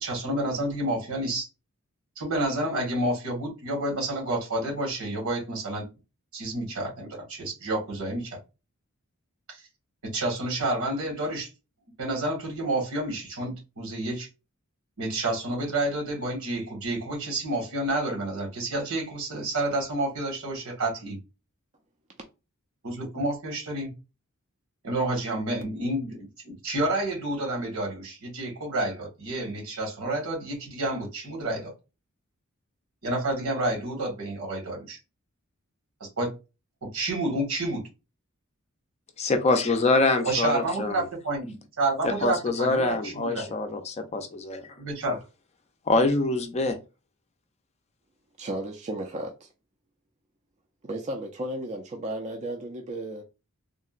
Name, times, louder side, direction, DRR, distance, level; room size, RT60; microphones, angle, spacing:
voice 1, 0.0-1.5 2.2-5.9 6.3-8.4 9.5-9.6 10.1-11.5 12.0-14.3 15.0-21.2 22.8-23.9 24.8-31.7 33.0-35.0 36.0-36.3 36.8-37.8 40.2-43.5 44.8-45.2, right 1 dB, 80° right, 1.5 m, -29 dB
voice 2, 39.2-41.1 42.0-44.7 45.9-46.8, left 3 dB, 30° left, 0.4 m, -25 dB
voice 3, 48.4-49.5 50.8-53.2, right 1 dB, 30° right, 0.4 m, -34 dB
3.6 x 2.1 x 2.4 m
head